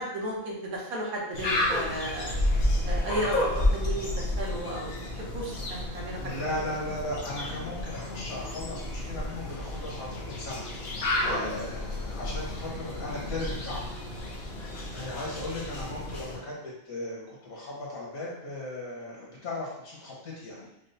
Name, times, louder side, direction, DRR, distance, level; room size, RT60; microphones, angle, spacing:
voice 1, 0.0-2.4 2.8-6.4 11.2-11.3 14.6-14.8, right 1 dB, 80° right, -3 dB, 1.4 m, -34 dB
sound 1, 1.3-16.4, left 1 dB, 55° left, 0.6 m, -31 dB
voice 2, 6.2-10.7 11.2-13.9 14.9-20.7, left 2 dB, 75° left, -4 dB, 1.5 m, -37 dB
5.2 x 2.0 x 2.6 m, 0.86 s
omnidirectional pair, 1.5 m